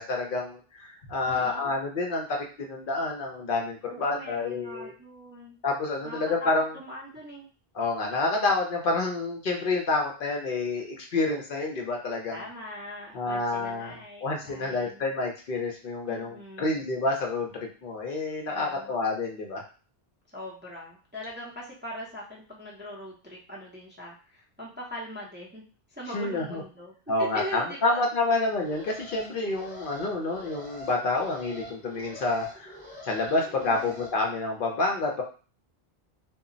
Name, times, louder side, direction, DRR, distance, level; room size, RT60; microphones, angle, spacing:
voice 1, 0.0-4.9 5.6-6.7 7.7-12.4 13.1-19.6 26.1-26.6 27.1-32.8 33.0-35.2, left 3 dB, 60° left, 1 dB, 0.7 m, -28 dB
voice 2, 1.3-1.7 3.9-5.6 6.0-7.5 12.3-15.1 16.1-16.8 18.4-19.0 20.3-26.9 27.2-28.1 33.3-34.0, equal, 15° right, -5 dB, 0.5 m, -41 dB
Alarm, 28.4-34.1, left 1 dB, 10° left, 0.8 m, -45 dB
2.2 x 2.0 x 3.7 m, 0.36 s
omnidirectional pair, 1.1 m